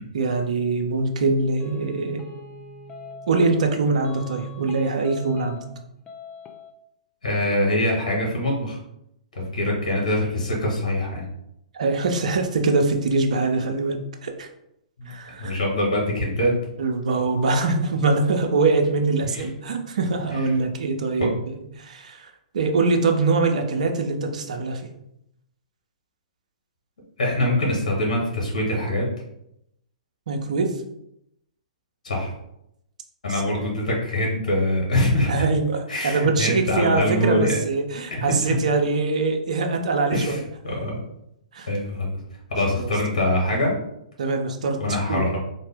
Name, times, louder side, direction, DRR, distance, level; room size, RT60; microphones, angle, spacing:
voice 1, 0.1-2.2 3.3-5.6 11.7-14.5 15.1-15.6 16.8-21.3 21.8-24.8 30.3-30.7 33.3-33.6 35.2-35.8 36.0-40.4 41.5-41.7 42.7-42.9 44.2-44.8 45.1-45.2, right 3 dB, 65° right, 4 dB, 0.6 m, -23 dB
sound 1, 1.6-3.7 4.0-5.8 6.1-6.7, right 1 dB, 25° left, 0.5 m, -39 dB
voice 2, 7.2-8.8 9.5-11.2 15.0-15.1 15.4-16.5 19.3-19.4 20.3-20.6 27.2-29.1 32.0-32.3 33.2-35.5 35.9-37.6 38.1-38.6 40.1-40.4 40.6-41.0 41.7-42.2 42.5-43.7 44.8-45.4, left 1 dB, 70° left, -2 dB, 1.4 m, -23 dB
3.7 x 2.4 x 3.4 m, 0.79 s
figure-of-eight pair, 120°, 4 cm